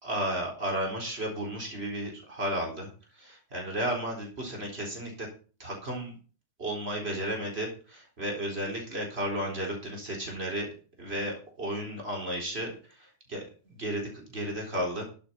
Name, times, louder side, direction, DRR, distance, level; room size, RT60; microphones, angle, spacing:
voice 1, 0.0-2.9 3.2-5.3 5.6-6.1 6.6-10.7 11.0-15.0, right 1 dB, 70° right, 0 dB, 4.5 m, -33 dB
12.0 x 7.8 x 5.8 m, 0.37 s
omnidirectional pair, 1.1 m